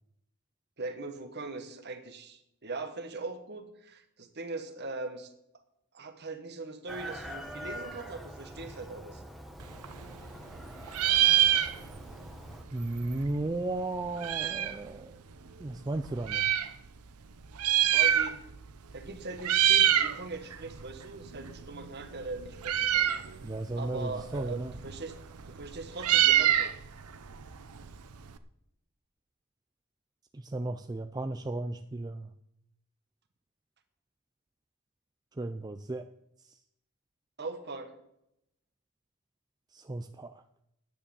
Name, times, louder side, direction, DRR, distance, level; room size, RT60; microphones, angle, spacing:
voice 1, 0.8-5.3 5.9-9.2 10.5-10.6 17.9-18.4 18.9-23.1 23.8-25.2 25.5-26.7 37.4-37.9, right 3 dB, 50° right, 8 dB, 1.3 m, -40 dB
Chicken rooster, 6.9-12.6, equal, ahead, 1.3 m, -44 dB
Meow, 9.6-10.6 10.9-12.2 12.5-12.6 12.7-14.8 15.5-16.7 17.4-18.6 18.9-19.1 19.4-20.2 20.5-28.4, right 11 dB, 85° right, 0.7 m, -27 dB
voice 2, 12.7-15.1 15.6-16.4 23.4-24.7 30.5-32.2 35.4-36.0 39.7-40.3, right 2 dB, 20° right, 7 dB, 0.4 m, -34 dB
9.9 x 9.5 x 6.9 m, 0.81 s
head